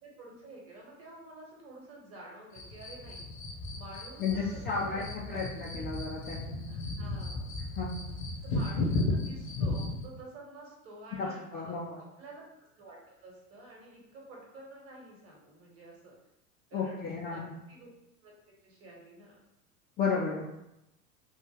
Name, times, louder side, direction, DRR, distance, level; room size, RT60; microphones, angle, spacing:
voice 1, 0.0-3.2 3.7-5.4 5.6-5.8 6.7-7.5 8.4-12.4 12.8-16.1 16.7-17.9 18.2-18.3 18.6-19.4, right 2 dB, 30° right, -2 dB, 1.3 m, -50 dB
sound 1, 2.5-10.0, left 2 dB, 65° left, 1.1 m, -35 dB
voice 2, 4.2-6.6 7.8-8.0 11.2-11.8 16.7-17.4 20.0-20.4, left 5 dB, 25° left, -4 dB, 0.5 m, -33 dB
3.6 x 2.5 x 3.0 m, 0.88 s
figure-of-eight pair, 85°, 44 cm